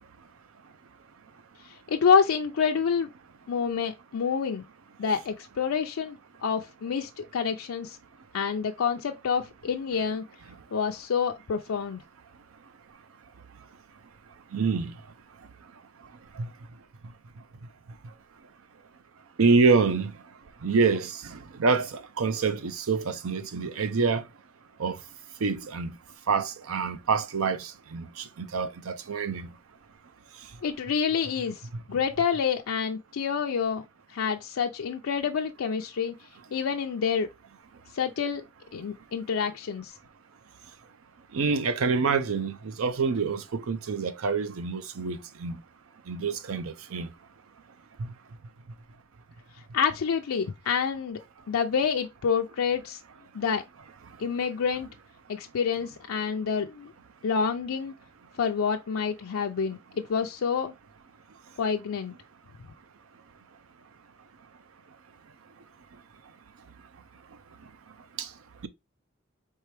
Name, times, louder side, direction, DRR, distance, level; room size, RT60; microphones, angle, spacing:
voice 1, 1.6-3.1 3.5-4.6 5.0-8.0 8.3-10.2 10.7-12.0 30.6-33.8 34.1-36.1 36.5-37.3 37.9-38.4 38.7-40.0 49.7-51.2 51.5-53.0 53.3-53.6 54.2-54.9 55.3-56.9 57.2-57.9 58.4-59.8 60.1-60.7 61.6-62.1, left 6 dB, 85° left, 0.4 m, -27 dB
voice 2, 14.5-14.9 16.4-16.5 19.4-20.1 20.6-24.2 24.8-25.0 25.4-25.9 26.3-29.5 41.3-45.6 46.1-47.1 48.0-48.1 68.2-68.3, right 4 dB, 85° right, 0.6 m, -26 dB
4.6 x 3.2 x 3.2 m
head